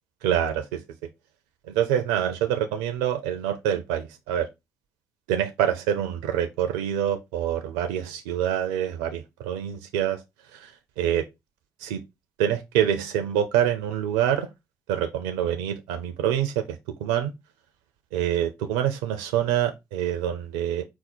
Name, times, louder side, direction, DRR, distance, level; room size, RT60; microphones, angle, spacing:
voice 1, 0.2-0.8 1.7-4.5 5.3-10.2 10.5-10.7 11.0-11.3 11.8-12.0 12.4-14.5 14.9-17.3 18.1-20.8, right 10 dB, 80° right, 0.5 m, -26 dB
5.1 x 2.1 x 4.3 m
hypercardioid pair, 45°, 8 cm